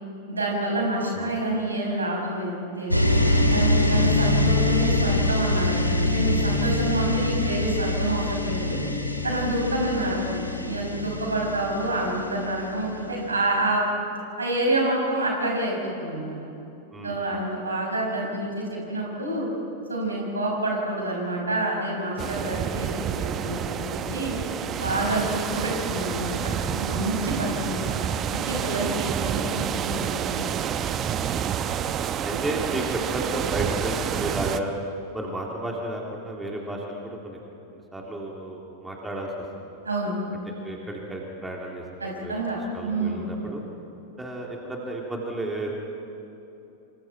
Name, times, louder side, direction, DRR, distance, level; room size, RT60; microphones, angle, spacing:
voice 1, 0.3-3.1 3.5-8.8 9.2-10.4 10.6-13.9 14.4-16.4 17.0-19.5 19.9-24.3 24.8-29.5 29.7-30.4 39.8-40.2 42.0-43.3, right 1 dB, 75° right, -1 dB, 6.1 m, -28 dB
sound 1, 2.9-13.0, left 1 dB, 90° left, 2.3 m, -24 dB
voice 2, 3.8-4.3 9.5-9.6 16.9-17.4 32.2-34.7 35.1-37.4 37.7-39.3 39.6-39.7 40.6-41.8 42.2-42.4 42.7-43.6 44.2-45.7, right 1 dB, 10° right, -1 dB, 3.4 m, -33 dB
sound 2, 22.2-34.6, right 8 dB, 30° right, 0.9 m, -29 dB
26.5 x 26.0 x 4.6 m, 2.9 s
figure-of-eight pair, 90°, 0 cm